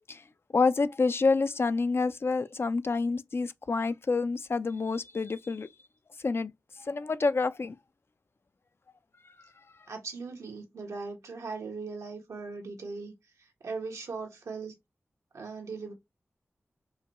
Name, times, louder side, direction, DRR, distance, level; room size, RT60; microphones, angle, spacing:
voice 1, 0.5-5.7 6.2-6.5 6.8-7.8, left 4 dB, 50° left, 0.4 m, -28 dB
voice 2, 9.9-13.1 13.6-14.7 15.3-15.9, right 4 dB, 90° right, 1.1 m, -39 dB
4.7 x 2.2 x 2.9 m
cardioid pair, 40°, 5 cm